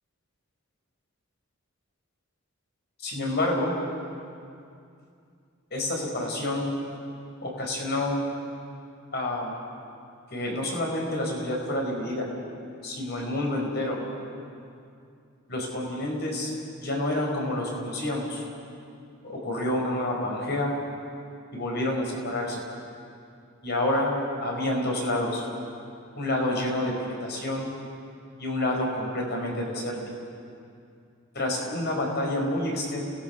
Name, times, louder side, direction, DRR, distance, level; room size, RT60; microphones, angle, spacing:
voice 1, 3.0-3.7 5.7-6.6 7.4-8.1 9.1-9.5 10.3-12.3 12.8-14.0 15.5-16.5 16.8-18.4 19.2-20.7 21.5-22.6 23.6-24.1 24.4-25.4 26.2-26.9 27.2-27.7 28.4-30.0 31.3-33.0, left 1 dB, 50° left, -1 dB, 5.5 m, -28 dB
30.0 x 19.0 x 6.1 m, 2.4 s
head